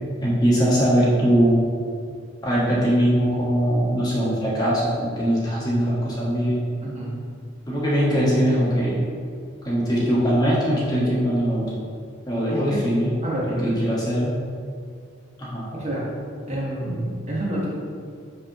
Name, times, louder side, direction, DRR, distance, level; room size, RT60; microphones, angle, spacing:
voice 1, 0.2-1.6 2.4-6.6 7.7-9.0 9.6-11.7 12.3-13.1 13.5-14.3 15.4-15.6, equal, 20° left, -7 dB, 1.4 m, -21 dB
voice 2, 6.8-7.1 12.5-12.8 13.2-13.7 15.7-16.1 16.5-17.7, right 1 dB, 35° right, -5 dB, 1.3 m, -28 dB
5.6 x 3.6 x 5.8 m, 2.2 s
head